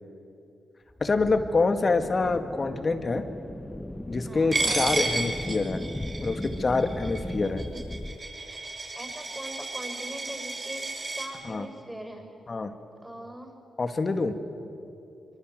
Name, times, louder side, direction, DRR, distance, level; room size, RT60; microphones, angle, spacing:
sound 1, 0.9-8.2, left 1 dB, 10° left, 1.3 m, -37 dB
voice 1, 1.0-3.2 4.1-5.8 6.2-7.6 11.4-11.7 12.5-12.7 13.8-14.4, left 3 dB, 45° left, 8 dB, 2.1 m, -26 dB
voice 2, 4.2-4.6 8.9-12.3 13.0-13.5, equal, 10° right, 3 dB, 6.9 m, -41 dB
Coin (dropping), 4.5-11.3, right 2 dB, 40° right, 6.4 m, -32 dB
24.5 x 23.5 x 8.0 m, 2.7 s
supercardioid pair, 45°, 0 cm